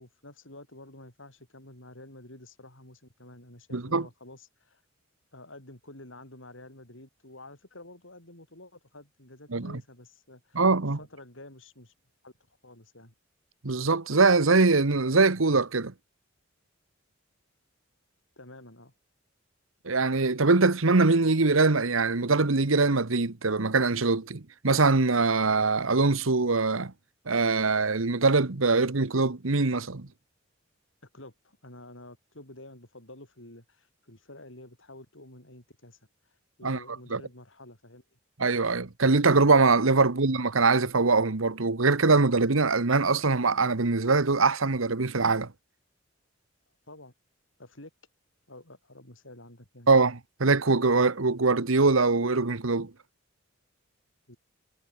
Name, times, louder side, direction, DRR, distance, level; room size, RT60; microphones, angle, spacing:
voice 1, 0.0-4.8 5.3-11.9 12.2-12.3 12.6-13.1 18.4-18.9 31.1-36.0 36.2-38.2 40.1-40.2 46.9-47.1 47.6-47.9 48.5-49.9 54.3-54.4, left 1 dB, 70° left, 7.5 m, -49 dB
voice 2, 3.7-4.1 9.5-9.8 10.5-11.0 13.6-15.9 19.8-26.9 27.3-30.1 36.6-36.8 37.1-37.2 38.4-45.5 49.9-52.9, right 3 dB, 85° right, 1.3 m, -23 dB
head